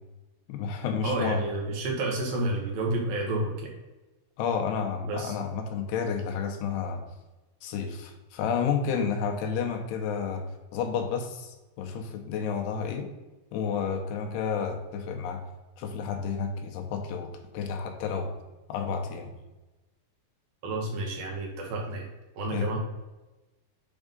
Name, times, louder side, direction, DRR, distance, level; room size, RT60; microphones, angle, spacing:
voice 1, 0.5-1.5 4.4-7.0 7.6-10.4 10.7-13.1 13.5-15.4 15.8-18.3 18.7-19.3 22.5-22.7, left 6 dB, 85° left, 4 dB, 2.9 m, -31 dB
voice 2, 1.0-3.7 5.1-5.3 20.6-22.1 22.3-22.8, right 2 dB, 70° right, -1 dB, 2.7 m, -30 dB
7.5 x 3.6 x 5.3 m, 1.1 s
omnidirectional pair, 4.7 m